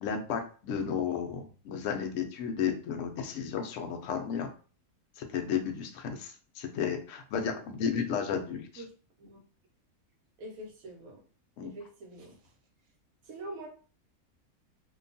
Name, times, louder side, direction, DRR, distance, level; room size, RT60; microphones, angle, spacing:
voice 1, 0.0-4.5 5.2-8.8 11.6-11.7, left 7 dB, 70° left, 5 dB, 0.8 m, -33 dB
voice 2, 10.4-11.2 11.6-12.4 13.3-13.7, right 1 dB, 75° right, 2 dB, 1.1 m, -44 dB
2.8 x 2.2 x 2.6 m, 0.40 s
omnidirectional pair, 1.5 m